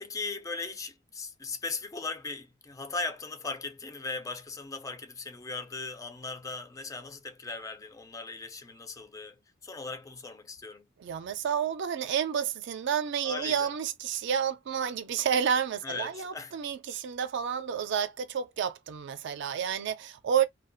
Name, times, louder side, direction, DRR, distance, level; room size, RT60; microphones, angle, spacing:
voice 1, 0.0-10.8 13.2-13.7 15.8-16.6, left 3 dB, 15° left, 0.3 m, -38 dB
voice 2, 11.0-20.5, right 8 dB, 65° right, 0.4 m, -30 dB
2.4 x 2.2 x 2.5 m
head